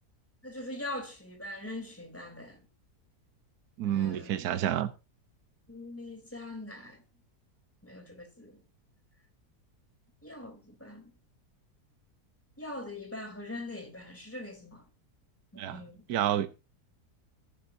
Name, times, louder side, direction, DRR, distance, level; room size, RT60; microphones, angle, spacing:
voice 1, 0.4-2.6 3.8-4.4 5.7-7.0 7.8-8.6 10.2-11.1 12.6-14.9 15.5-16.0, left 2 dB, 10° left, 3.1 m, -42 dB
voice 2, 3.8-4.9 15.6-15.8 16.1-16.5, right 11 dB, 75° right, 1.3 m, -29 dB
17.0 x 10.0 x 2.7 m
omnidirectional pair, 1.7 m